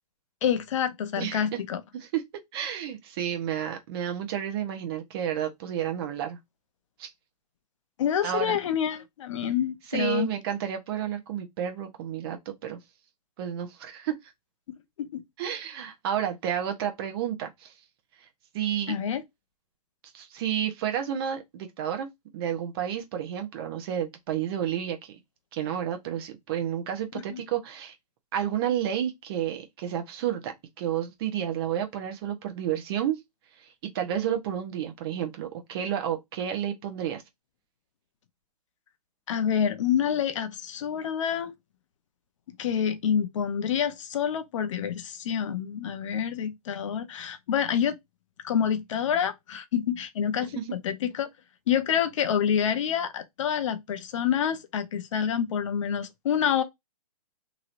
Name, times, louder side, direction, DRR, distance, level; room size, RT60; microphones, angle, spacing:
voice 1, 0.4-1.8 8.0-10.3 14.7-15.2 18.9-19.2 27.3-27.4 39.3-41.5 42.6-48.0 48.4-51.3 51.7-56.6, left 8 dB, 50° left, 0.6 m, -27 dB
voice 2, 1.2-1.6 1.9-2.2 2.5-6.4 7.0-7.1 8.2-8.6 9.9-12.8 13.4-14.2 15.4-17.7 18.5-18.9 20.1-25.1 25.5-27.9 28.3-33.2 33.9-37.2 50.5-50.8, right 10 dB, 40° right, 0.7 m, -31 dB
3.0 x 2.8 x 2.5 m
hypercardioid pair, 130°, 20 cm